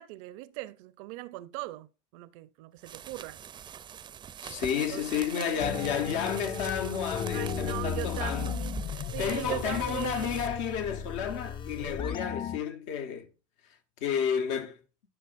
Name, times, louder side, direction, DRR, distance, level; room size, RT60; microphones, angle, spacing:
voice 1, 0.0-3.4 4.7-6.0 7.3-10.4, right 17 dB, 80° right, 0.5 m, -40 dB
sound 1, 2.8-10.5, right 8 dB, 30° right, 0.4 m, -44 dB
voice 2, 4.4-8.5 9.2-13.3 14.0-14.8, left 8 dB, 80° left, 1.0 m, -31 dB
sound 2, 5.6-12.6, left 7 dB, 30° left, 0.4 m, -35 dB
11.0 x 6.0 x 2.5 m
supercardioid pair, 105°, 16 cm